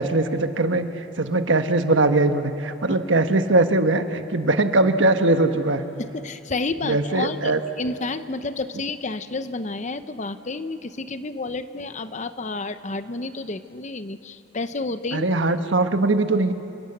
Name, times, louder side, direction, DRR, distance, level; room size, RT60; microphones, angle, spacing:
voice 1, 0.0-5.8 6.8-7.6 15.1-16.5, right 2 dB, 85° right, 8 dB, 1.3 m, -21 dB
voice 2, 6.0-15.3, left 3 dB, 40° left, 11 dB, 0.8 m, -30 dB
27.5 x 19.5 x 8.0 m, 2.8 s
head